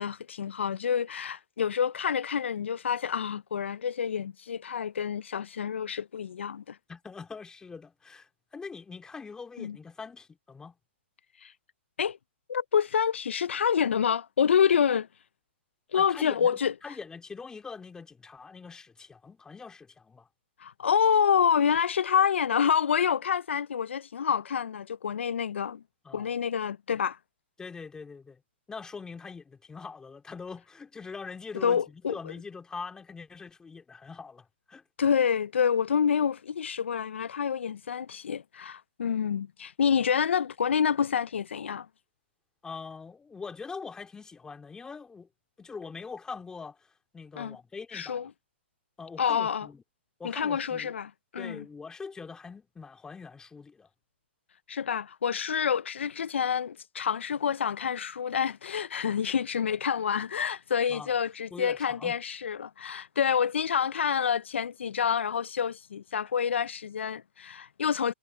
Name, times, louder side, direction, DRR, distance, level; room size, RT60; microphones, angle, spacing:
voice 1, 0.0-6.8 9.6-9.8 11.4-11.5 12.0-12.2 12.5-15.1 15.9-16.7 20.6-25.8 26.1-27.2 31.6-32.2 35.0-41.9 47.4-47.6 47.9-48.3 49.2-49.7 50.2-51.6 54.7-68.1, left 7 dB, 80° left, 0.5 m, -27 dB
voice 2, 6.9-10.8 15.9-20.3 26.0-26.2 27.6-28.4 28.7-34.8 42.6-45.3 45.6-46.8 47.1-48.3 49.0-49.8 50.2-50.9 51.4-53.9 60.9-61.1 61.5-62.2, left 5 dB, 10° left, 3.1 m, -43 dB
hypercardioid pair, 130°, 6 cm